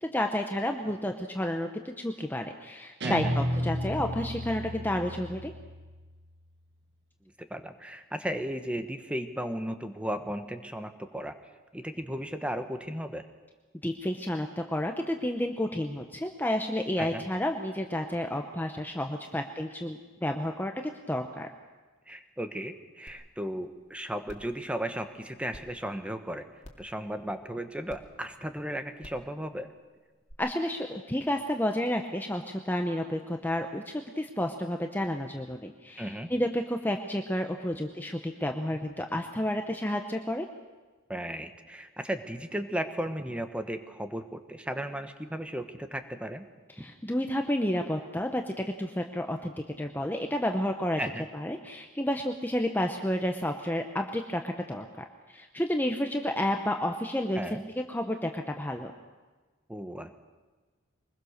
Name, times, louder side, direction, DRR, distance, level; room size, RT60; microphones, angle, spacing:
voice 1, 0.0-5.5 13.8-21.5 30.4-40.5 46.8-51.0 51.3-58.9, left 1 dB, 10° left, 4 dB, 0.9 m, -31 dB
voice 2, 3.0-3.4 7.4-11.4 11.7-13.3 17.0-17.2 22.1-26.5 26.8-29.7 36.0-36.3 41.1-46.4 51.0-51.3 57.4-57.7 59.7-60.1, equal, 5° right, 8 dB, 1.2 m, -35 dB
Guitar, 3.0-6.2, equal, 60° right, 1.3 m, -33 dB
sound 1, 23.1-23.2 23.6-23.7 24.2-24.5 25.5-25.6 26.6-26.9 27.9-28.0 29.0-29.2 30.3-30.4, left 1 dB, 35° left, 2.6 m, -47 dB
23.5 x 21.0 x 6.7 m, 1.3 s
head